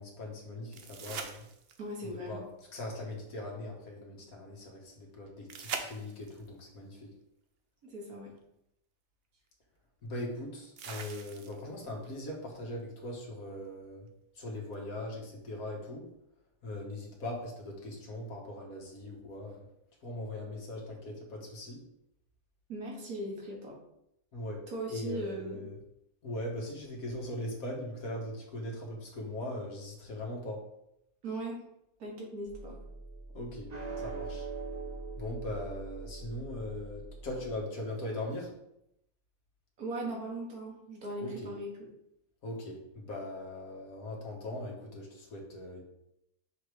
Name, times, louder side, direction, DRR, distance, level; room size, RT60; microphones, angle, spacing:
voice 1, 0.0-1.4 2.0-2.4 2.7-7.1 10.0-14.1 14.4-16.1 16.6-19.7 20.0-21.8 24.3-25.8 26.2-30.6 33.3-34.5 35.2-38.5 41.2-41.5 42.4-45.8, left 1 dB, 75° left, -1 dB, 1.8 m, -40 dB
sound 1, 0.7-2.0 5.5-6.5 8.4-8.5 10.8-11.8 14.7-14.8, right 5 dB, 55° right, 0.7 m, -42 dB
voice 2, 1.8-2.4 7.9-8.4 22.7-23.8 24.7-25.7 31.2-31.6 32.0-32.8 39.8-41.7, right 1 dB, 80° right, -2 dB, 1.9 m, -39 dB
sound 2, 32.5-37.6, right 3 dB, 30° right, 0.9 m, -42 dB
6.3 x 3.3 x 4.8 m, 0.81 s
omnidirectional pair, 1.5 m